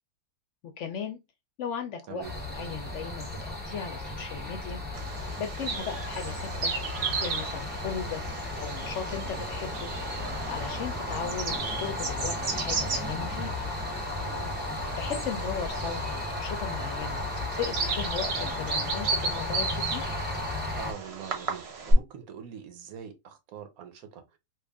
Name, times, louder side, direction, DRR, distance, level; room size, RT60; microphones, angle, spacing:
voice 1, 0.8-1.2 1.6-4.8 5.4-6.7 7.2-8.2 8.6-9.9 10.5-13.5 15.0-17.2 17.6-20.2, left 7 dB, 65° left, 0.8 m, -37 dB
sound 1, 2.2-20.9, left 2 dB, 10° right, 0.5 m, -34 dB
Bird vocalization bird call bird song, 4.9-21.9, right 4 dB, 50° right, 0.9 m, -35 dB
voice 2, 14.2-14.5 20.8-24.2, right 8 dB, 75° right, 1.1 m, -43 dB
3.1 x 2.4 x 3.4 m
omnidirectional pair, 1.6 m